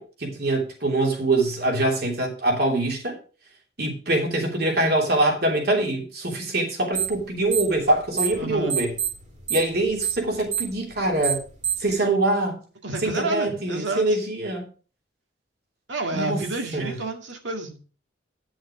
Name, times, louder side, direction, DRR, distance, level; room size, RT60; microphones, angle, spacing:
voice 1, 0.0-3.2 3.8-9.0 9.5-11.4 11.8-12.6 13.0-14.7 16.1-16.4 16.7-17.0, right 2 dB, 55° right, 3.0 m, -24 dB
sound 1, 6.9-7.2 7.5-8.4 8.7-11.9, right 9 dB, 40° right, 3.3 m, -26 dB
voice 2, 8.3-8.8 12.8-14.0 15.9-17.8, right 2 dB, 75° right, 2.0 m, -29 dB
10.5 x 6.3 x 4.9 m
head